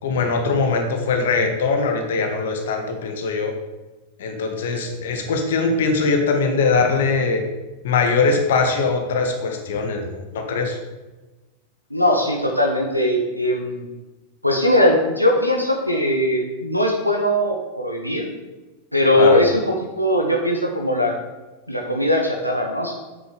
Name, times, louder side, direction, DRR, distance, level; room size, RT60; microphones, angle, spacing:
voice 1, 0.0-3.5 4.2-7.4 7.8-10.8 19.2-19.4, left 4 dB, 60° left, 4 dB, 1.7 m, -21 dB
voice 2, 11.9-13.9 14.4-18.3 18.9-21.1 21.7-23.0, left 1 dB, 90° left, 0 dB, 1.4 m, -20 dB
8.7 x 6.9 x 6.9 m, 1.1 s
figure-of-eight pair, 90°, 0 cm